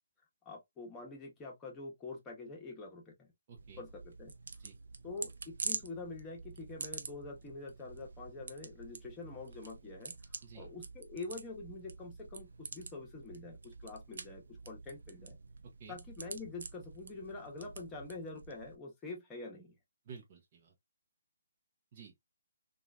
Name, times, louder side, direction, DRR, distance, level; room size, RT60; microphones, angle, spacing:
voice 1, 0.4-3.3 3.8-4.3 5.0-15.4 15.9-19.8, left 3 dB, 15° left, 1.0 m, -46 dB
voice 2, 3.5-3.8 4.6-4.8 10.4-10.7 15.8-16.0 20.1-20.7 21.9-22.2, right 6 dB, 40° right, 0.8 m, -52 dB
sound 1, 3.6-18.8, right 4 dB, 65° right, 0.4 m, -47 dB
3.0 x 2.4 x 2.4 m
figure-of-eight pair, 140°, 0 cm